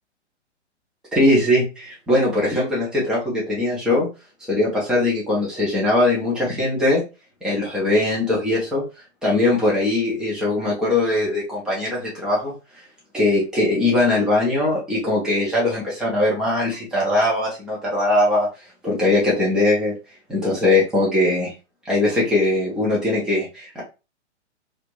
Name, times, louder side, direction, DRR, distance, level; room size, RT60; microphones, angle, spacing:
voice 1, 1.1-4.1 4.5-7.0 7.4-8.8 9.2-12.5 13.1-18.5 18.8-19.9 20.3-21.5 21.9-23.8, left 2 dB, ahead, -6 dB, 0.5 m, -20 dB
2.5 x 2.1 x 2.9 m, 0.29 s
figure-of-eight pair, 120°, 35 cm